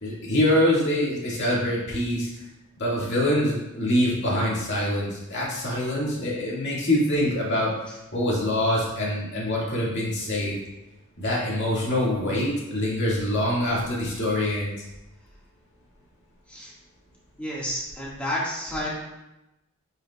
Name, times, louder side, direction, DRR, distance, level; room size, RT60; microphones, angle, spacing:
voice 1, 0.0-2.3 2.8-7.7 8.1-10.6 11.2-14.7, left 1 dB, 55° left, -5 dB, 2.1 m, -24 dB
voice 2, 17.4-18.9, left 1 dB, 5° left, -7 dB, 1.8 m, -30 dB
9.2 x 4.9 x 2.4 m, 0.95 s
head